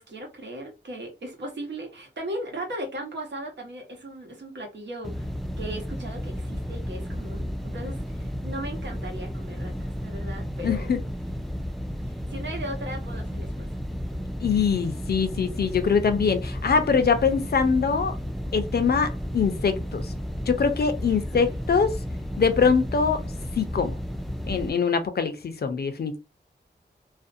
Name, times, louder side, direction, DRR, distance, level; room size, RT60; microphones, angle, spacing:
voice 1, 0.0-11.0 12.0-13.7 21.1-21.5, right 1 dB, 80° right, 1.0 m, -37 dB
sound 1, 5.0-24.7, equal, ahead, 0.4 m, -33 dB
voice 2, 10.6-11.0 14.4-18.2 18.5-20.0 20.5-22.0 22.4-23.2 23.6-23.9 24.4-26.2, left 5 dB, 60° left, 0.5 m, -23 dB
2.5 x 2.1 x 2.5 m
wide cardioid pair, 120°, 18 cm